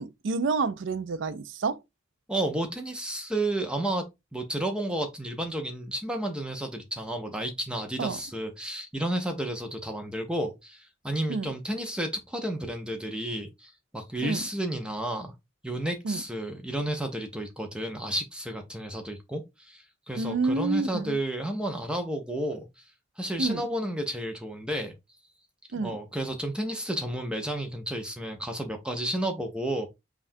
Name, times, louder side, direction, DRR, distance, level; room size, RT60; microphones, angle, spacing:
voice 1, 0.0-1.8 8.0-8.2 11.3-11.5 14.2-14.4 16.0-16.2 20.2-21.2 23.4-23.6 25.7-26.0, right 4 dB, 70° right, 0.4 m, -29 dB
voice 2, 2.3-15.3 15.6-22.8 23.2-24.9 25.8-29.9, right 1 dB, 5° right, 0.5 m, -32 dB
5.5 x 2.3 x 2.6 m
head